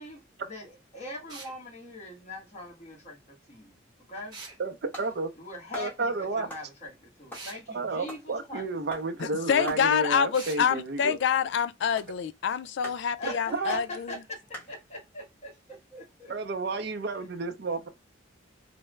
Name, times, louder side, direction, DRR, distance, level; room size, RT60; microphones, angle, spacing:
voice 1, 0.0-4.4 5.3-8.7 13.2-16.4 16.7-17.2, left 2 dB, 35° left, 1.2 m, -42 dB
sound 1, 1.3-1.6 4.3-4.6 7.3-7.6 10.3-10.7, right 3 dB, 20° right, 0.9 m, -43 dB
sound 2, 4.5-15.2, equal, 10° left, 1.1 m, -47 dB
voice 2, 4.6-5.3 5.7-6.5 7.7-11.2 13.5-13.8 16.3-17.9, right 3 dB, 60° right, 0.5 m, -31 dB
voice 3, 9.2-14.1, left 7 dB, 65° left, 0.3 m, -27 dB
3.4 x 2.1 x 3.1 m
head